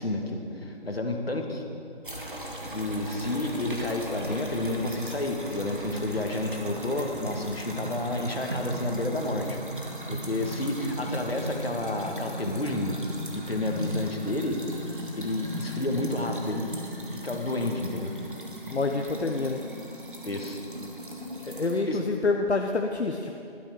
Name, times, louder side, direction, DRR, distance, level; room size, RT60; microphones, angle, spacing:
voice 1, 0.0-1.6 2.7-9.6 10.1-13.1 13.3-14.6 15.1-16.7 17.1-18.1 20.2-20.6 21.8-22.0, left 2 dB, 60° left, 3 dB, 1.5 m, -30 dB
sound 1, 2.0-21.8, right 1 dB, 50° right, 1.4 m, -37 dB
voice 2, 18.7-19.6 21.4-23.4, left 3 dB, 75° left, 3 dB, 0.8 m, -27 dB
12.0 x 10.0 x 4.8 m, 2.6 s
figure-of-eight pair, 180°, 34 cm